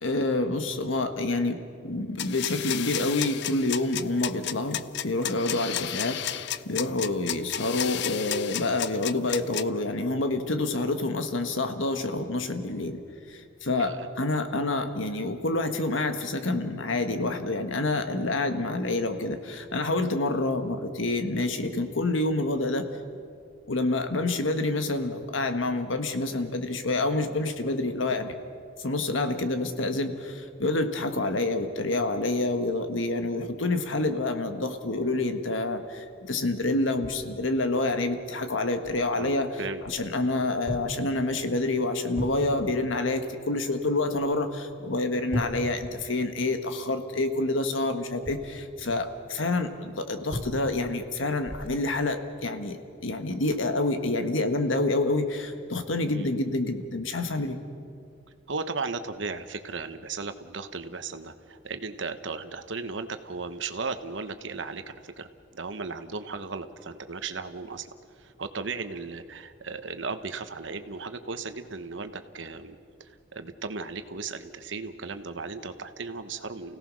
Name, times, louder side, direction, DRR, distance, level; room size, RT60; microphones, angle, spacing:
voice 1, 0.0-13.0 13.3-22.9 23.7-28.3 28.8-39.5 39.8-57.6, left 2 dB, 80° left, 7 dB, 1.5 m, -28 dB
sound 1, 2.2-9.6, left 11 dB, 60° left, 0.5 m, -32 dB
sound 2, 37.0-37.3 37.9-38.0 38.8-39.1 39.8-40.4 40.6-41.0 41.4-41.6 42.1-42.8 44.1-44.4 44.7-44.8 45.3-46.5 48.1-49.1 50.3-51.0 51.4-51.9 52.4-52.6, equal, 30° right, 3.3 m, -37 dB
voice 2, 39.1-39.8 56.1-56.3 58.5-67.9 68.2-76.8, right 4 dB, 65° right, 9 dB, 1.1 m, -36 dB
29.0 x 17.0 x 6.3 m, 2.4 s
head